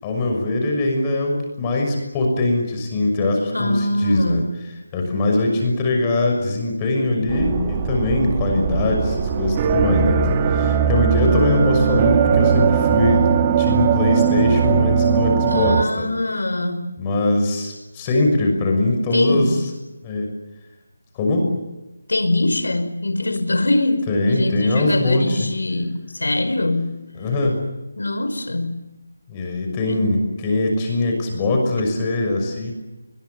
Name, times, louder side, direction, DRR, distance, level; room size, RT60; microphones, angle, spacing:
voice 1, 0.0-4.5 4.9-16.1 17.0-19.6 20.0-20.3 21.1-21.6 24.1-25.5 27.1-27.6 29.3-32.7, left 2 dB, 20° left, 2 dB, 6.2 m, -21 dB
voice 2, 3.5-4.5 15.5-16.9 19.1-19.7 22.1-26.9 28.0-28.8 29.9-30.0, left 2 dB, 85° left, 10 dB, 5.2 m, -22 dB
sound 1, 7.3-15.8, right 7 dB, 25° right, 1.9 m, -19 dB
29.5 x 21.5 x 7.2 m, 1.0 s
figure-of-eight pair, 165°, 0 cm